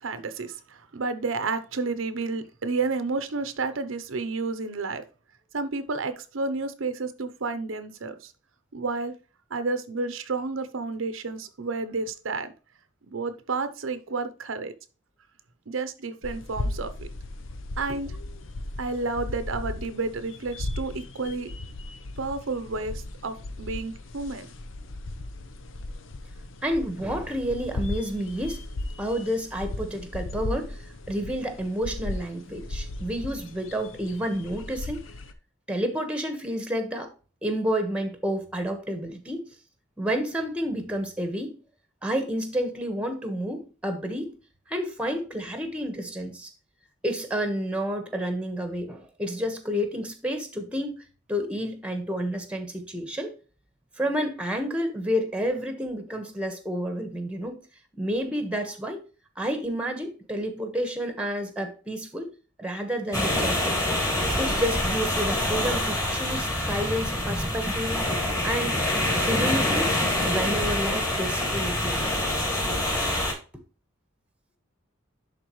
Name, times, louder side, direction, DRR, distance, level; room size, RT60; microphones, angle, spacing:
voice 1, 0.0-5.0 5.5-8.3 8.7-9.1 9.5-12.5 13.1-14.7 15.7-17.1 17.8-18.1 18.8-21.5 22.2-24.5, right 3 dB, 80° right, 0.7 m, -31 dB
sound 1, 16.2-35.3, left 2 dB, 70° left, 0.7 m, -36 dB
voice 2, 26.6-28.6 29.0-35.1 35.7-37.1 37.4-39.5 40.0-41.5 42.0-44.3 44.7-46.5 47.0-51.0 51.3-53.3 54.0-57.6 58.0-59.0 59.4-62.3 62.6-63.7 64.3-68.0 68.4-68.8 69.1-69.9 70.2-72.2, equal, 5° right, 1.3 m, -30 dB
sound 2, 63.1-73.3, left 1 dB, 20° left, 3.0 m, -26 dB
11.0 x 4.1 x 3.1 m
head